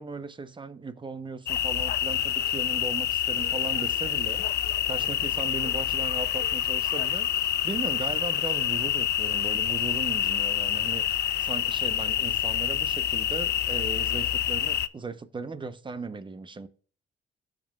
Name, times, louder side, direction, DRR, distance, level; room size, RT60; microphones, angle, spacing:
voice 1, 0.0-16.7, right 4 dB, 25° right, 0.8 m, -37 dB
sound 1, 1.5-14.9, left 11 dB, 55° left, 0.5 m, -27 dB
15.0 x 5.2 x 2.3 m
cardioid pair, 90°, 20 cm